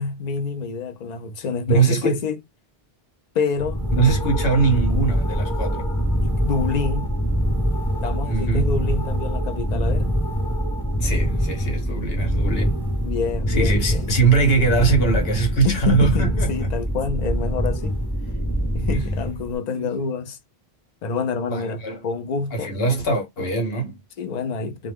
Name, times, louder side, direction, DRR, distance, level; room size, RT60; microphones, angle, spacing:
voice 1, 0.0-2.4 3.3-3.9 6.1-7.2 8.0-10.1 13.0-14.1 15.6-18.0 18.7-20.4 21.0-22.7 24.2-24.9, left 5 dB, 55° left, 0.5 m, -27 dB
voice 2, 1.7-2.2 3.9-5.9 8.3-8.6 11.0-12.8 13.5-16.7 18.9-19.1 19.7-19.9 21.5-22.0 22.5-24.0, right 4 dB, 70° left, 1.1 m, -22 dB
sound 1, 3.6-19.6, equal, ahead, 0.9 m, -24 dB
2.1 x 2.1 x 3.3 m
omnidirectional pair, 1.0 m